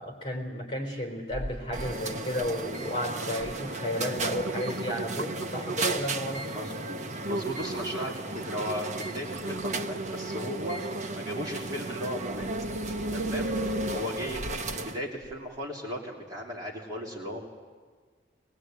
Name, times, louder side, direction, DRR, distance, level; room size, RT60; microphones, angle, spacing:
voice 1, 0.0-6.5, left 1 dB, 25° left, 1 dB, 3.8 m, -33 dB
sound 1, 1.3-2.0 2.3-2.8 3.4-3.5 3.9-6.2 6.7-6.8 7.2-14.7 15.2-15.3, right 2 dB, 90° right, 0.7 m, -35 dB
sound 2, 1.7-15.0, right 2 dB, 40° right, 1.0 m, -36 dB
voice 2, 6.5-10.8 11.1-12.5 13.1-13.5 13.9-17.5, equal, 20° right, -3 dB, 3.3 m, -36 dB
21.5 x 21.5 x 9.1 m, 1.5 s
head